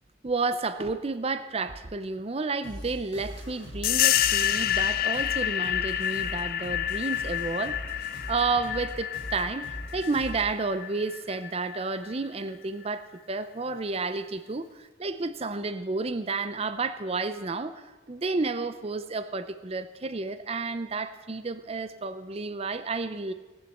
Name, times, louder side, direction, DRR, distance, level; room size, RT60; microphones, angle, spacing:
voice 1, 0.2-23.3, right 3 dB, 30° right, 12 dB, 0.5 m, -31 dB
sound 1, 2.6-10.5, equal, 35° left, 3.1 m, -41 dB
sound 2, 3.8-12.1, left 12 dB, 50° left, 0.5 m, -28 dB
18.0 x 7.2 x 8.0 m, 1.2 s
head